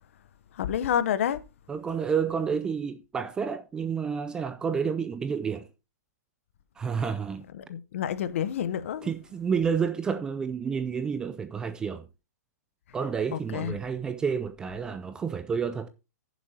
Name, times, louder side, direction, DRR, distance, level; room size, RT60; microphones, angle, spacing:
voice 1, 0.5-1.4 7.5-9.1 13.3-13.7, left 9 dB, 50° left, 0.8 m, -29 dB
voice 2, 1.7-5.7 6.8-7.5 9.0-12.1 12.9-15.9, right 6 dB, 10° right, 0.4 m, -30 dB
14.5 x 7.2 x 2.8 m
hypercardioid pair, 160°, 9 cm